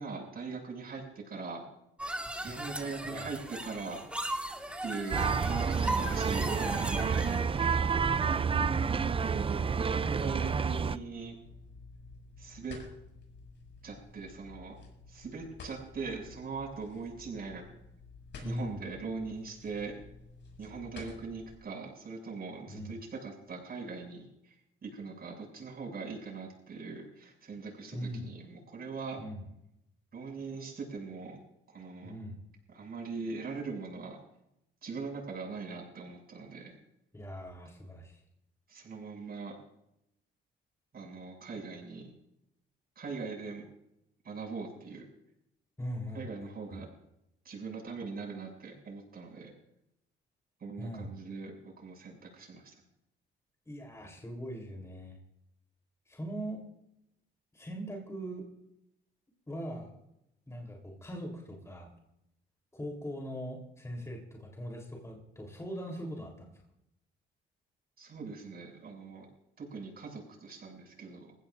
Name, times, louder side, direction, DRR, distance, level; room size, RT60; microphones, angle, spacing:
voice 1, 0.0-1.6 2.4-4.0 4.8-5.3 5.7-8.0 9.2-11.4 12.4-12.8 13.8-14.8 15.1-17.6 18.4-19.9 20.6-24.6 24.8-29.2 30.1-31.4 31.7-32.1 32.7-34.2 34.8-36.7 38.7-39.6 40.9-42.1 43.0-43.7 44.2-45.0 46.1-46.9 47.4-49.5 50.6-52.8 68.0-69.3 69.6-71.3, right 4 dB, 50° right, 0 dB, 7.3 m, -41 dB
sound 1, 2.0-7.5, right 1 dB, 5° right, 1.9 m, -37 dB
sound 2, 5.1-11.0, right 6 dB, 30° right, 0.5 m, -29 dB
sound 3, 9.3-21.6, left 3 dB, 65° left, 7.0 m, -52 dB
voice 2, 18.4-18.7 22.7-22.9 27.9-28.2 29.2-29.4 32.0-32.4 37.1-38.2 45.8-46.2 46.7-46.9 50.8-51.1 53.7-55.2 56.1-56.6 57.5-58.4 59.5-59.9 60.5-61.9 62.7-66.6, equal, 15° left, 0 dB, 3.8 m, -40 dB
21.5 x 16.0 x 2.7 m, 0.81 s
cardioid pair, 90°, 20 cm